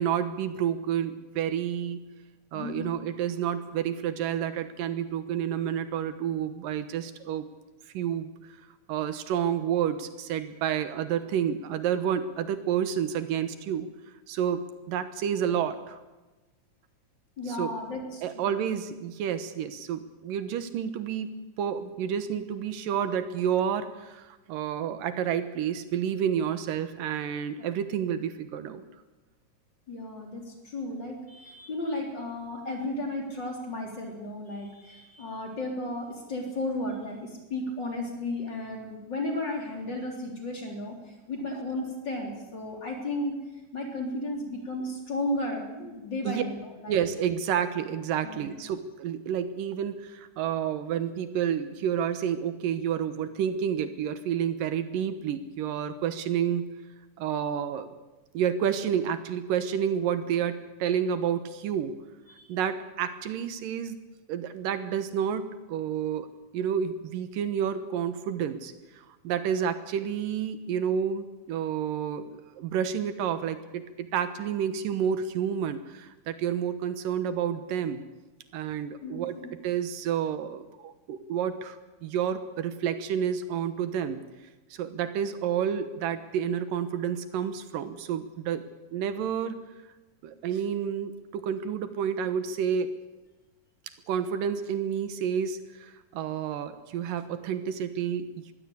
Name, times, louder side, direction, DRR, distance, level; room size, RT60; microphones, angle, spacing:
voice 1, 0.0-2.1 2.5-7.5 7.9-8.3 8.9-13.9 14.3-16.0 17.5-17.7 18.2-21.3 21.6-28.8 46.2-46.4 46.9-56.8 57.2-57.9 58.3-62.0 62.5-64.0 64.3-66.3 66.5-78.0 78.5-79.4 79.6-84.2 84.7-88.6 88.9-89.6 90.2-93.0 94.1-98.5, right 8 dB, 80° right, 11 dB, 2.9 m, -30 dB
voice 2, 2.5-3.1 17.4-18.6 29.9-43.3 43.7-47.0 48.2-48.5 62.3-62.5 79.0-79.5, left 1 dB, 35° left, 2 dB, 3.9 m, -34 dB
21.5 x 16.0 x 8.5 m, 1.1 s
omnidirectional pair, 3.8 m